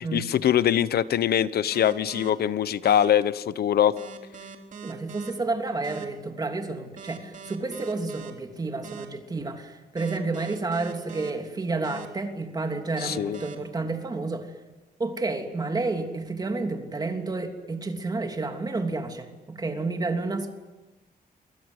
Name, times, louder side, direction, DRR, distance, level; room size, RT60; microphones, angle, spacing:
voice 1, 0.0-4.0 13.0-13.4, left 10 dB, 85° left, 15 dB, 1.0 m, -23 dB
sound 1, 1.7-2.3 2.8-3.1 4.0-5.3 5.8-6.0 7.0-8.3 8.8-9.1 10.0-11.3 11.8-12.1 13.0-13.5, right 7 dB, 50° right, 3.6 m, -41 dB
voice 2, 4.8-14.5 15.0-20.5, right 3 dB, 25° right, 4 dB, 3.1 m, -30 dB
29.0 x 24.0 x 8.1 m, 1.1 s
wide cardioid pair, 165°, 16 cm